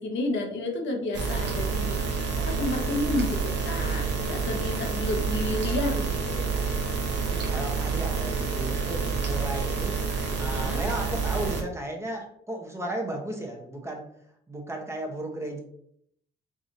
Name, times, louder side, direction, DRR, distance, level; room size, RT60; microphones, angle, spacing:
voice 1, 0.0-6.5 10.5-10.8, left 2 dB, 70° left, 2 dB, 0.9 m, -31 dB
sound 1, 1.1-11.6, right 5 dB, 60° right, 0.8 m, -28 dB
voice 2, 7.2-10.0 10.4-14.1 14.5-15.6, right 1 dB, 15° right, 1 dB, 0.9 m, -35 dB
4.8 x 2.6 x 2.6 m, 0.68 s
cardioid pair, 90°, 20 cm